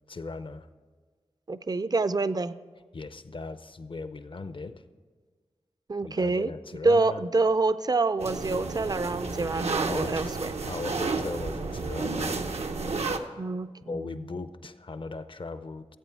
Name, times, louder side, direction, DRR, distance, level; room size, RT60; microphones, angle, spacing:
voice 1, 0.1-0.7 2.9-4.8 6.0-7.2 9.8-10.3 10.7-12.4 13.9-16.0, left 3 dB, 50° left, 12 dB, 0.6 m, -38 dB
voice 2, 1.5-2.5 5.9-6.5 6.8-10.5 13.4-14.0, right 3 dB, 35° right, 14 dB, 0.5 m, -26 dB
sound 1, 8.2-13.2, right 3 dB, 75° right, 0.8 m, -31 dB
14.5 x 8.2 x 4.6 m, 1.5 s
cardioid pair, 50°, 11 cm